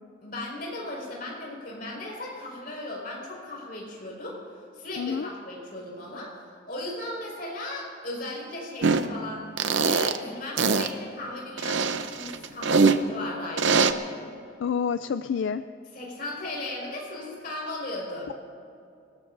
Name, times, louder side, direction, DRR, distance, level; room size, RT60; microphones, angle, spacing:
voice 1, 0.2-4.4 4.7-9.5 9.8-13.9 15.9-18.3, left 1 dB, 50° left, -4 dB, 5.1 m, -37 dB
voice 2, 5.0-5.3 14.6-15.6, left 7 dB, 75° left, 11 dB, 0.3 m, -28 dB
sound 1, 8.8-9.0 9.6-10.2 10.6-10.9 11.6-13.0 13.6-13.9, right 4 dB, 75° right, 0.7 m, -22 dB
27.5 x 18.5 x 2.6 m, 2.5 s
head